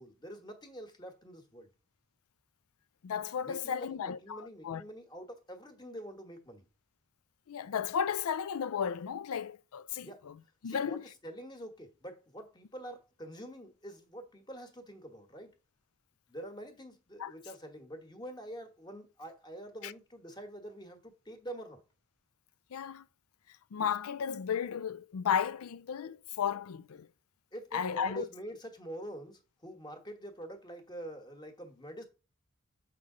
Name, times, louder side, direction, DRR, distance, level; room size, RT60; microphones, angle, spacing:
voice 1, 0.0-1.7 3.4-6.7 10.0-10.2 10.6-15.5 16.3-21.8 27.5-32.1, right 1 dB, 20° left, 1.2 m, -46 dB
voice 2, 3.0-4.8 7.5-10.3 10.6-11.0 17.2-17.3 19.8-19.9 22.7-23.0 23.7-27.1 27.7-28.3, left 7 dB, 80° left, 0.4 m, -34 dB
7.4 x 5.6 x 3.7 m
head